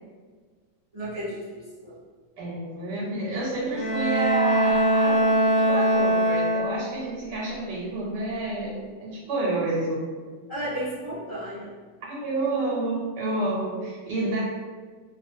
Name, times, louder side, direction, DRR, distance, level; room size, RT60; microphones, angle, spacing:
voice 1, 0.9-2.0 10.5-11.7, equal, 30° right, -12 dB, 0.5 m, -33 dB
voice 2, 2.4-5.3 5.6-10.1 12.0-14.4, right 2 dB, 80° right, -4 dB, 1.2 m, -29 dB
Bowed string instrument, 3.7-7.1, right 1 dB, 65° left, 0.9 m, -22 dB
2.6 x 2.4 x 2.6 m, 1.5 s
omnidirectional pair, 1.8 m